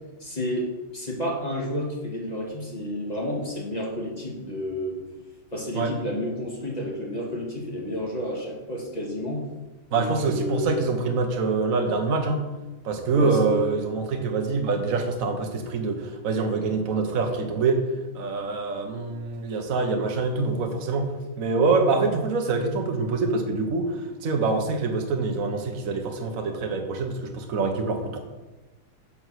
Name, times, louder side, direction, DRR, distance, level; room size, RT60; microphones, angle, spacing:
voice 1, 0.2-5.0 5.5-9.4 9.9-10.9 13.1-13.7, equal, 20° left, -2 dB, 1.9 m, -31 dB
voice 2, 9.9-12.5 12.8-17.8 18.1-21.1 21.4-23.9 24.2-28.2, right 4 dB, 45° right, 3 dB, 1.5 m, -25 dB
7.8 x 6.9 x 6.0 m, 1.1 s
omnidirectional pair, 2.3 m